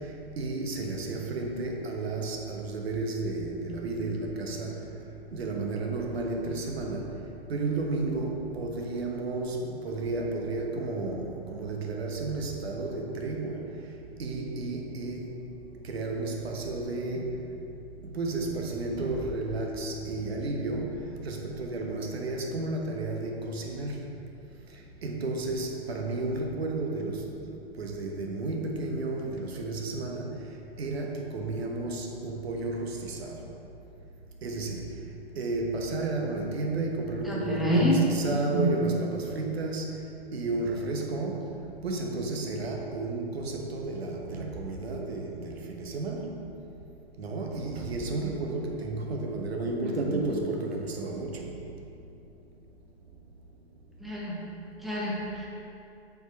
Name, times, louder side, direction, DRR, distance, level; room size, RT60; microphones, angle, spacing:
voice 1, 0.0-4.8 5.3-7.1 7.5-13.7 14.2-15.4 15.8-17.4 18.0-24.0 25.0-27.3 27.8-30.3 30.8-33.4 34.4-35.0 35.3-40.0 40.3-46.4 47.2-51.5, right 2 dB, 70° right, 1 dB, 1.1 m, -32 dB
voice 2, 37.2-38.0 38.3-38.7 49.8-50.2 54.0-54.5 54.8-55.5, equal, ahead, -6 dB, 1.3 m, -28 dB
7.9 x 4.8 x 4.5 m, 2.7 s
figure-of-eight pair, 110°, 32 cm